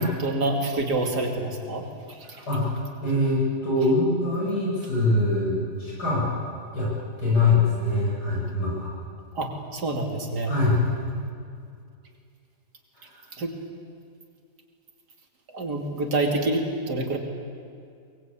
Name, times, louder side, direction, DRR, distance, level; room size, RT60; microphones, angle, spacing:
voice 1, 0.2-2.4 9.3-11.1 13.3-13.6 15.5-17.2, right 2 dB, 80° right, 2 dB, 3.3 m, -28 dB
voice 2, 3.0-6.3 6.7-6.9 7.2-8.9 10.5-10.8 13.0-13.1, left 2 dB, 80° left, -5 dB, 8.8 m, -23 dB
23.5 x 21.0 x 8.6 m, 2.3 s
omnidirectional pair, 1.7 m